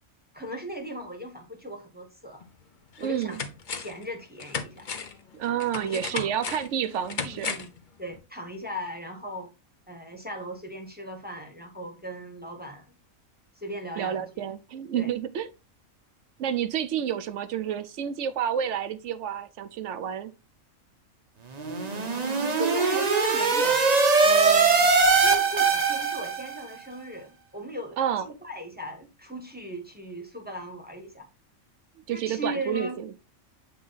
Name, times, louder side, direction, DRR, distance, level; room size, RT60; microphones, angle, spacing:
voice 1, 0.3-2.4 3.0-3.4 3.7-4.9 5.7-6.3 7.2-7.7 8.0-9.5 9.9-12.9 13.6-14.5 15.0-15.1 21.6-22.1 22.6-23.9 24.2-24.9 25.2-31.3 32.1-33.0, equal, 10° right, 1.0 m, -38 dB
sound 1, 2.4-2.5 3.0-4.0 4.4-7.8 8.1-8.2, left 5 dB, 45° left, 0.7 m, -35 dB
voice 2, 3.0-3.4 5.3-7.6 14.0-15.5 16.4-20.3 28.0-28.3 32.1-33.1, right 9 dB, 65° right, 0.9 m, -29 dB
sound 2, 21.6-26.6, right 4 dB, 35° right, 0.8 m, -21 dB
7.8 x 3.2 x 3.9 m
omnidirectional pair, 1.4 m